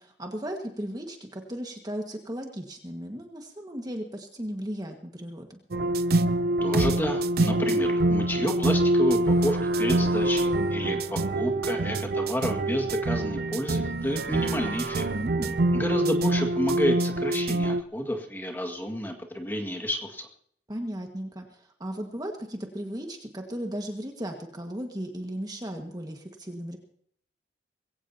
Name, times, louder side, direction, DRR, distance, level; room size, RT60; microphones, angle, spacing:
voice 1, 0.0-5.6 10.8-11.3 15.1-15.6 20.7-26.8, equal, 20° right, 3 dB, 1.7 m, -36 dB
sound 1, 5.7-17.8, right 1 dB, 55° right, 0.6 m, -25 dB
voice 2, 6.6-15.1 15.7-20.3, equal, 10° left, 2 dB, 2.0 m, -30 dB
21.5 x 17.0 x 2.9 m, 0.63 s
head